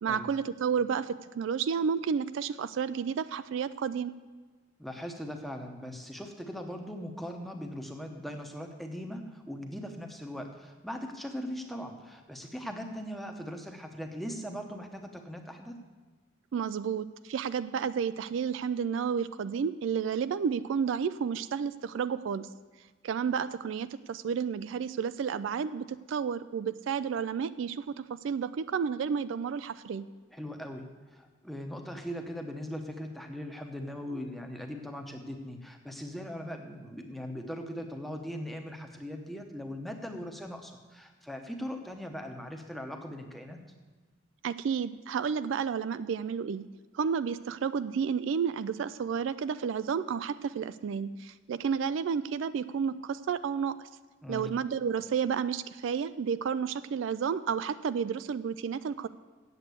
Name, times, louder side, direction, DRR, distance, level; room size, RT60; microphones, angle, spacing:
voice 1, 0.0-4.1 16.5-22.5 23.0-30.1 44.4-46.6 46.9-53.8 54.3-59.1, right 6 dB, 70° right, 14 dB, 0.3 m, -31 dB
voice 2, 4.8-15.8 30.3-43.6 54.2-54.5, equal, ahead, 4 dB, 0.9 m, -40 dB
8.1 x 8.0 x 8.2 m, 1.4 s
head